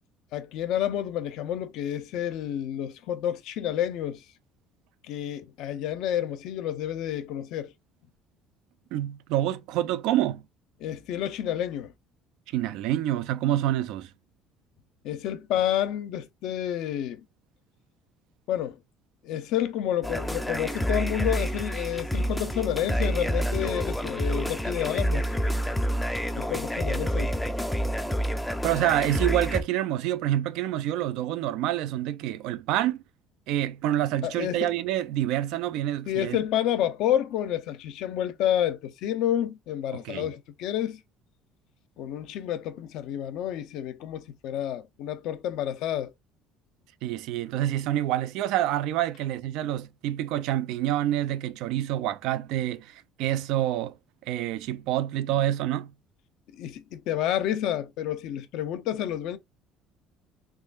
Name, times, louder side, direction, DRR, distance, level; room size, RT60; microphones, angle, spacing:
voice 1, 0.3-4.2 5.0-7.7 10.8-11.9 15.0-17.2 18.5-18.8 19.2-25.3 26.4-27.3 34.2-34.7 36.1-41.0 42.0-46.1 56.6-59.4, left 11 dB, 65° left, 0.6 m, -29 dB
voice 2, 8.9-10.4 12.5-14.1 28.6-33.0 33.5-36.4 39.9-40.3 47.0-53.9 54.3-55.9, right 13 dB, 70° right, 0.4 m, -27 dB
sound 1, 20.0-29.6, equal, 5° left, 0.4 m, -28 dB
3.7 x 3.1 x 2.4 m
cardioid pair, 145°, 0 cm